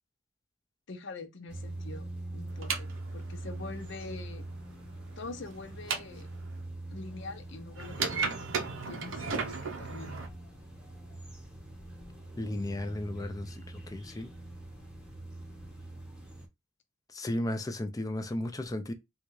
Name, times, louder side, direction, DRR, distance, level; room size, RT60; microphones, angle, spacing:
voice 1, 0.9-4.4 5.2-6.3 6.9-8.4 8.8-10.2, left 3 dB, 65° left, 0.7 m, -44 dB
sound 1, 1.5-16.5, right 1 dB, 5° right, 1.0 m, -44 dB
sound 2, 2.5-6.6 7.8-10.3, right 5 dB, 75° right, 0.7 m, -36 dB
voice 2, 12.4-14.3 17.1-18.9, left 1 dB, 20° left, 0.5 m, -34 dB
3.6 x 2.3 x 3.1 m
head